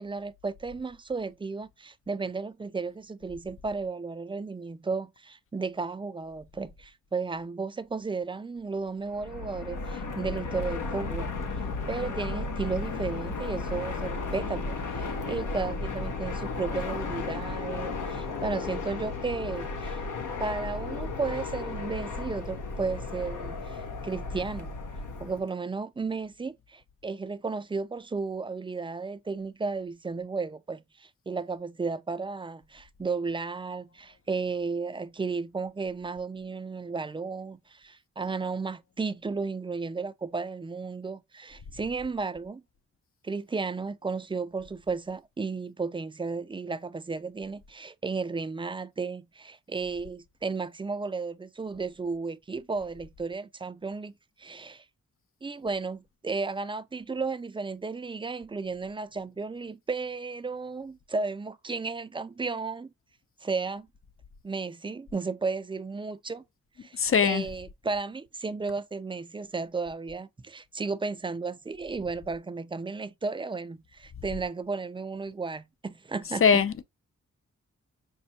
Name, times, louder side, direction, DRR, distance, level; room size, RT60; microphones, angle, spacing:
voice 1, 0.0-11.3 11.9-20.0 20.4-24.7 25.2-42.6 43.2-54.1 54.4-54.8 55.4-62.9 63.4-63.9 64.4-66.4 66.8-76.4, right 4 dB, 15° right, 0.4 m, -34 dB
Fixed-wing aircraft airplane, 9.1-25.5, left 3 dB, 75° left, 1.0 m, -34 dB
voice 2, 67.0-67.5 76.4-76.8, left 6 dB, 45° left, 0.6 m, -21 dB
5.3 x 2.2 x 2.8 m
cardioid pair, 50°, 31 cm